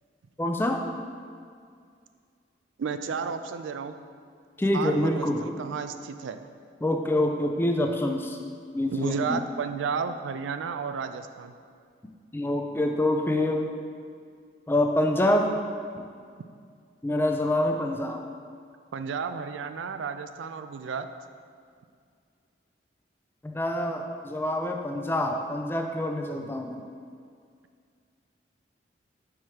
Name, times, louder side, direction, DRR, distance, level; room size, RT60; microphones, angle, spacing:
voice 1, 0.4-0.9 4.6-5.5 6.8-8.4 8.7-9.4 12.3-13.7 14.7-15.5 17.0-18.2 23.4-26.8, left 1 dB, 10° left, 3 dB, 0.3 m, -26 dB
voice 2, 2.8-4.0 4.7-6.4 8.9-11.5 18.9-21.1, right 5 dB, 90° right, 9 dB, 0.4 m, -32 dB
4.7 x 4.6 x 5.6 m, 2.2 s
head